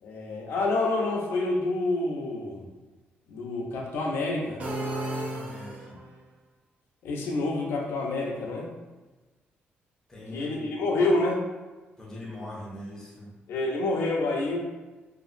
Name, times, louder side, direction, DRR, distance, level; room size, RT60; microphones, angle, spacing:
voice 1, 0.0-2.6 3.3-4.7 7.0-8.7 10.3-11.4 13.5-14.6, left 2 dB, 75° left, 0 dB, 0.4 m, -28 dB
sound 1, 4.6-6.2, right 1 dB, 40° right, 0.4 m, -33 dB
voice 2, 5.2-6.0 10.1-10.7 12.0-13.3, left 1 dB, 15° left, -5 dB, 0.6 m, -41 dB
2.7 x 2.5 x 2.5 m, 1.2 s
wide cardioid pair, 175°, 4 cm